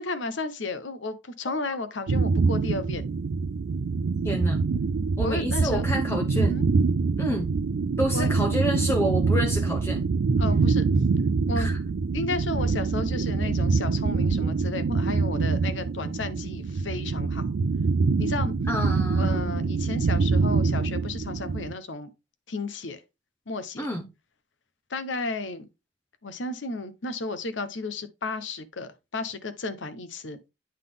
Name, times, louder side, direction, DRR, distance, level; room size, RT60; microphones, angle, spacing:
voice 1, 0.0-3.1 5.2-5.8 6.3-6.6 8.1-8.3 10.4-10.9 11.5-11.7 12.1-17.4 18.2-18.5 19.2-22.1 22.5-23.0 23.5-23.9 24.9-25.7 26.2-30.4, left 3 dB, 90° left, 0.9 m, -33 dB
sound 1, 2.1-21.7, right 4 dB, 75° right, 0.4 m, -25 dB
voice 2, 4.2-4.6 5.2-6.6 7.2-7.5 8.0-10.0 11.5-11.8 18.7-19.9 23.8-24.1, equal, 15° left, 0.8 m, -29 dB
8.9 x 3.9 x 3.6 m
head